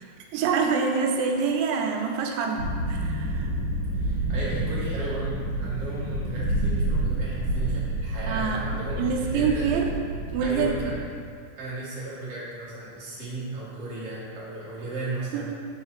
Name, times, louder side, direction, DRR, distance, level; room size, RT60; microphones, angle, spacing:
voice 1, 0.3-2.6 2.9-3.5 8.3-8.7 9.0-9.9 10.3-10.7 15.3-15.4, right 5 dB, 90° right, 2 dB, 3.1 m, -25 dB
sound 1, 2.6-11.0, right 1 dB, 60° right, 2.3 m, -29 dB
voice 2, 3.9-9.7 10.4-11.0 11.6-15.5, right 2 dB, 45° right, -9 dB, 0.9 m, -35 dB
5.6 x 4.9 x 6.5 m, 2.2 s
omnidirectional pair, 5.1 m